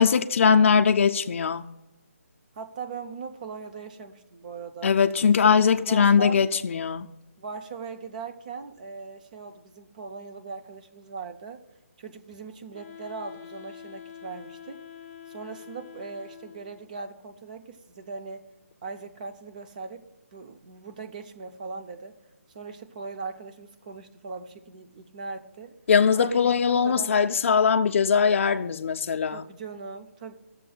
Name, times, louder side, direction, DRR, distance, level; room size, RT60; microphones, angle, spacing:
voice 1, 0.0-1.7 4.8-7.1 25.9-29.4, left 6 dB, 55° left, 0.4 m, -21 dB
voice 2, 2.6-5.0 5.4-6.4 7.4-11.6 12.0-14.8 15.3-18.5 18.8-22.2 22.5-25.8 26.1-27.3 29.3-30.3, right 5 dB, 30° right, 0.5 m, -39 dB
Wind instrument woodwind instrument, 12.7-16.8, left 9 dB, 25° left, 0.9 m, -45 dB
17.0 x 6.8 x 2.3 m
hypercardioid pair, 165°, 8 cm